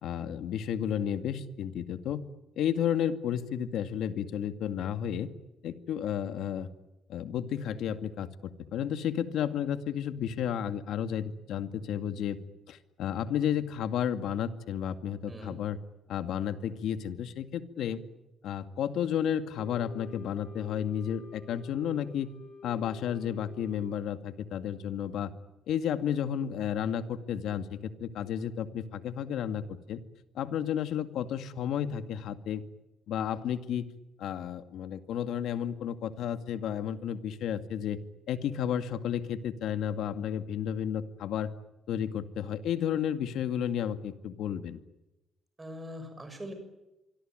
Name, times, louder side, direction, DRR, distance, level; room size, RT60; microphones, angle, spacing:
voice 1, 0.0-2.2 2.6-5.3 5.6-6.7 7.1-12.4 12.7-15.8 16.1-18.0 18.4-22.3 22.6-25.3 25.7-30.0 30.3-32.6 33.1-33.9 34.2-38.0 38.3-41.5 41.9-44.8, left 9 dB, 90° left, 9 dB, 2.2 m, -32 dB
voice 2, 15.3-15.6 45.6-46.5, equal, 15° right, 7 dB, 6.5 m, -42 dB
Wind instrument woodwind instrument, 19.5-24.0, left 5 dB, 30° left, 6.9 m, -50 dB
26.5 x 24.5 x 9.1 m, 0.99 s
cardioid pair, 180°, 0 cm